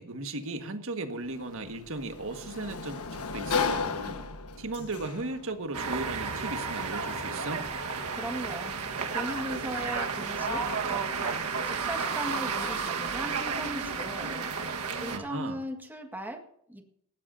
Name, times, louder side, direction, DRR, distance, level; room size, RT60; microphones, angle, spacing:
voice 1, 0.0-4.2 4.6-7.7 15.1-15.6, right 2 dB, 65° right, 6 dB, 1.6 m, -36 dB
Sliding door, 1.2-13.8, left 5 dB, 80° left, 1.4 m, -39 dB
sound 1, 5.7-15.2, right 5 dB, 80° right, 1.5 m, -32 dB
voice 2, 8.1-8.7 9.1-14.5 15.0-16.9, equal, 10° right, 3 dB, 1.8 m, -38 dB
19.0 x 15.0 x 2.7 m, 0.70 s
head